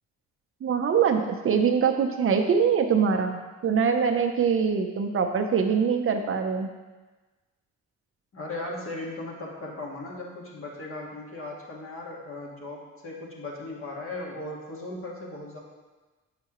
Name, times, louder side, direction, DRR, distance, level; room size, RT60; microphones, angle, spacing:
voice 1, 0.6-6.7, right 6 dB, 45° right, 4 dB, 0.6 m, -23 dB
voice 2, 8.3-15.6, left 2 dB, 45° left, -2 dB, 1.7 m, -37 dB
7.6 x 5.7 x 3.0 m, 1.2 s
cardioid pair, 90°, 30 cm